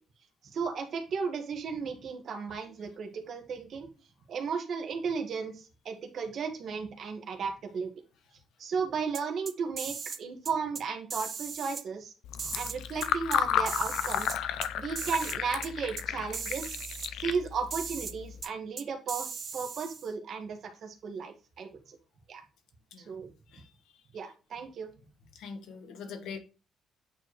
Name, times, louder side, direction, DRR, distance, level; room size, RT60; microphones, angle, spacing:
voice 1, 0.5-3.9 4.3-7.9 8.6-12.1 12.5-14.4 14.7-16.8 17.2-22.0 22.3-22.4 23.0-23.3 24.1-24.9, right 5 dB, 45° right, 4 dB, 1.6 m, -35 dB
sound 1, 9.1-10.2 10.5-10.8 11.1-11.8 12.4-13.4 13.7-14.7 15.0-15.4 15.6-15.7 16.0-16.1 16.3-17.1 17.7-18.1 18.4-18.5 18.8-20.1, right 5 dB, 30° right, 0.5 m, -38 dB
Fill (with liquid), 12.2-18.4, left 10 dB, 90° left, 0.6 m, -33 dB
voice 2, 25.3-26.4, left 5 dB, 75° left, 7 dB, 1.3 m, -42 dB
8.6 x 4.6 x 3.1 m, 0.32 s
cardioid pair, 170°, 0 cm